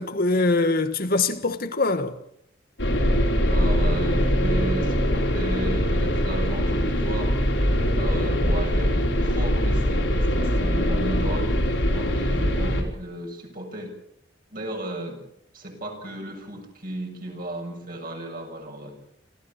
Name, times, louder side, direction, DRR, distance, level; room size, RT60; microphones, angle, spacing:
voice 1, 0.0-2.2, left 3 dB, 55° left, 1.6 m, -23 dB
sound 1, 2.8-12.8, equal, 85° left, 5.1 m, -22 dB
voice 2, 3.5-7.3 7.9-11.6 11.9-13.9 14.5-15.2 15.5-19.0, right 1 dB, 50° right, 7.3 m, -34 dB
27.5 x 15.0 x 7.1 m
head